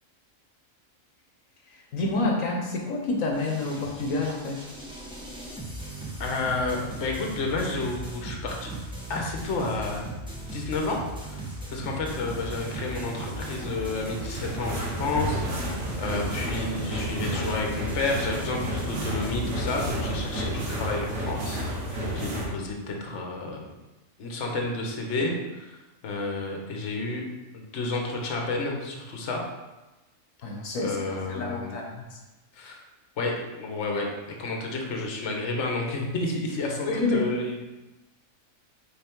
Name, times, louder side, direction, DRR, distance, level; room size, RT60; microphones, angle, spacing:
voice 1, 1.9-4.7 22.5-22.7 30.4-31.0 31.3-32.0 36.9-37.3, left 2 dB, 85° left, 1 dB, 1.3 m, -28 dB
sound 1, 3.3-19.9, right 1 dB, 5° right, 1.1 m, -38 dB
voice 2, 6.2-8.7 9.1-10.0 10.5-11.4 11.7-21.6 21.9-23.7 24.2-25.7 26.0-27.3 27.5-29.4 30.8-31.8 32.5-32.8 33.2-34.1 34.4-37.6, left 3 dB, 65° left, 1 dB, 1.2 m, -31 dB
sound 2, 12.1-22.5, equal, 80° right, 1.7 m, -32 dB
5.6 x 4.0 x 4.5 m, 1.1 s
omnidirectional pair, 1.4 m